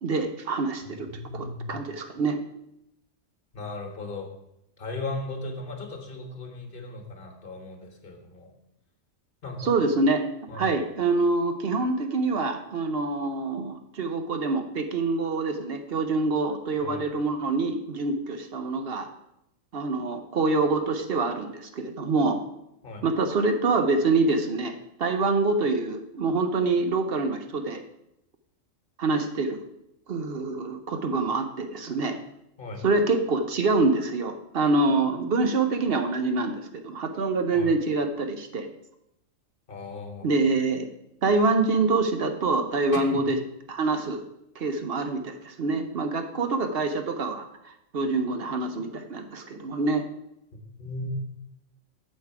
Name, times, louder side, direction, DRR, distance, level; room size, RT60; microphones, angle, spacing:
voice 1, 0.0-1.1 1.3-2.4 9.6-10.2 10.5-19.1 19.7-22.4 23.0-27.8 29.0-29.6 30.1-32.2 32.8-38.7 40.2-40.9 41.2-43.4 43.7-44.2 44.6-50.0, right 3 dB, 55° right, 7 dB, 0.8 m, -26 dB
voice 2, 0.8-1.7 3.5-4.3 4.8-8.5 9.4-9.7 10.5-10.7 16.8-17.0 22.8-23.0 32.6-32.8 37.5-37.7 39.7-40.3 42.9-43.3 50.8-51.1, left 2 dB, 45° left, 3 dB, 1.5 m, -37 dB
8.3 x 6.6 x 4.7 m, 0.82 s
omnidirectional pair, 1.4 m